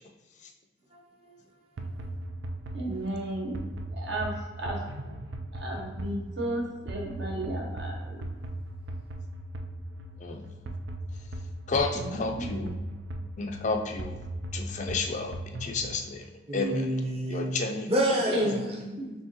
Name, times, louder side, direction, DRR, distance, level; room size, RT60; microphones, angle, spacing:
voice 1, 0.9-1.4 16.5-18.6, right 1 dB, 35° right, 0.8 m, -29 dB
sound 1, 1.8-16.0, right 1 dB, 90° right, 0.4 m, -38 dB
voice 2, 2.7-4.8 5.5-8.2 11.9-12.8 18.3-19.1, right 1 dB, 70° right, 1.0 m, -33 dB
voice 3, 11.7-12.7 13.4-14.2 14.5-16.3 16.5-16.9 17.3-17.9 18.3-18.4, left 3 dB, 40° left, 0.4 m, -31 dB
4.4 x 3.4 x 2.9 m
head